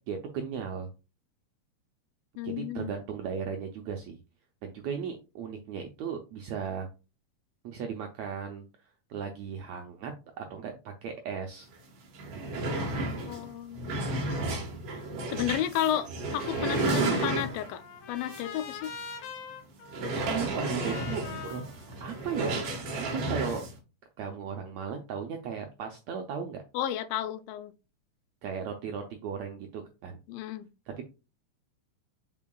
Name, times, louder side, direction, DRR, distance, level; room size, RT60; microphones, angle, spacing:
voice 1, 0.1-0.9 2.4-4.2 4.6-6.9 7.6-8.7 9.1-10.1 10.4-11.7 12.3-13.0 20.2-21.6 22.0-23.6 24.2-26.6 28.4-30.2, right 6 dB, 80° right, 1.6 m, -36 dB
voice 2, 2.4-2.9 13.3-14.0 15.3-17.8 18.1-18.9 20.6-20.8 26.7-27.7 30.3-30.7, left 11 dB, 90° left, 2.3 m, -32 dB
sound 1, 11.7-11.8 12.1-17.8 18.3-18.4 18.8-18.9 19.9-23.7, right 2 dB, 55° right, 2.0 m, -32 dB
Trumpet, 16.4-22.6, left 6 dB, 70° left, 2.6 m, -44 dB
7.3 x 5.5 x 2.3 m
omnidirectional pair, 4.0 m